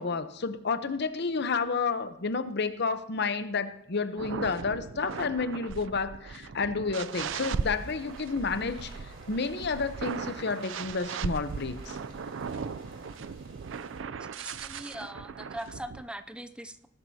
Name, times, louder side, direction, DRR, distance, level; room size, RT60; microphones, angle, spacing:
voice 1, 0.0-8.9 9.3-12.0, left 4 dB, 60° left, 11 dB, 0.8 m, -30 dB
sound 1, 4.2-16.0, right 5 dB, 70° right, 0.4 m, -38 dB
sound 2, 7.1-14.0, right 2 dB, 90° right, 3.1 m, -51 dB
voice 2, 14.4-16.9, right 1 dB, 5° right, 9 dB, 0.4 m, -41 dB
19.5 x 12.0 x 2.8 m, 0.78 s
head